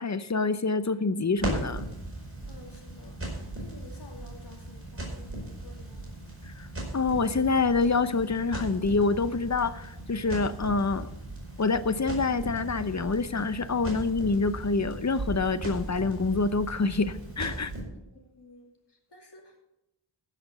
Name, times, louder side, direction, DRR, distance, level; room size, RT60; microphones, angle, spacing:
voice 1, 0.0-1.8 6.5-6.7 6.9-11.1 11.6-17.7, left 4 dB, 35° left, 13 dB, 0.7 m, -26 dB
Crackle, 1.4-17.8, right 1 dB, 25° right, 4.8 m, -38 dB
voice 2, 2.5-6.1 18.1-19.6, left 2 dB, 55° left, 1 dB, 2.6 m, -52 dB
15.0 x 5.9 x 6.9 m, 0.90 s
wide cardioid pair, 75°, 48 cm